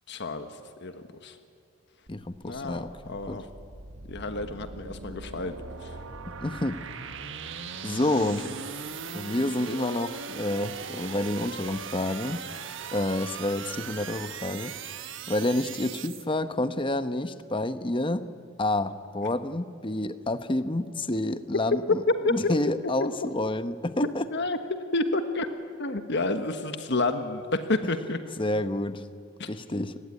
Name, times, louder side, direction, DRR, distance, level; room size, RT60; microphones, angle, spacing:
voice 1, 0.1-1.4 2.4-3.5 4.1-6.0 8.4-8.6 22.1-22.5 24.3-24.6 24.9-25.5 25.8-28.2 29.4-29.5, left 2 dB, 55° left, 8 dB, 1.4 m, -29 dB
voice 2, 2.1-3.4 6.4-6.8 7.8-8.5 9.1-12.4 12.9-14.7 15.3-18.2 18.6-22.0 22.3-24.2 28.4-29.0 29.5-30.0, left 1 dB, 25° left, 11 dB, 1.0 m, -29 dB
sound 1, 2.1-16.3, right 5 dB, 60° right, 1.4 m, -39 dB
30.0 x 20.5 x 9.8 m, 2.3 s
head